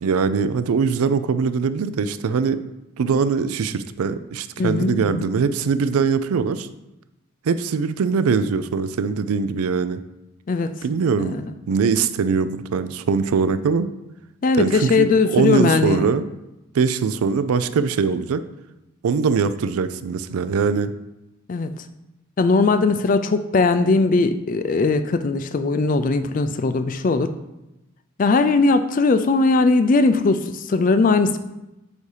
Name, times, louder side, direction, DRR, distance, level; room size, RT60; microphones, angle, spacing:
voice 1, 0.0-2.6 3.0-6.7 7.4-10.0 10.8-13.9 14.6-16.3 16.7-18.4 19.0-20.9, right 5 dB, 90° right, 13 dB, 0.4 m, -22 dB
voice 2, 4.6-5.2 10.5-10.7 11.2-11.5 14.4-16.1 21.5-21.8 22.4-27.3 28.2-31.4, left 3 dB, 40° left, 10 dB, 0.3 m, -19 dB
8.2 x 2.8 x 4.9 m, 0.94 s
head